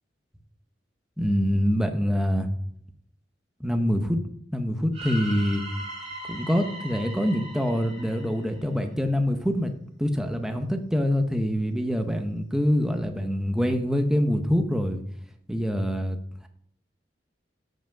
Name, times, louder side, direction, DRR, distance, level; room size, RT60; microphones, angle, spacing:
voice 1, 1.2-2.5 3.6-4.2 4.5-5.6 6.3-9.7 10.0-15.0 15.5-16.2, equal, 5° right, 6 dB, 0.8 m, -25 dB
sound 1, 4.9-9.0, right 1 dB, 35° right, 2.0 m, -39 dB
8.1 x 5.0 x 5.0 m, 0.67 s
head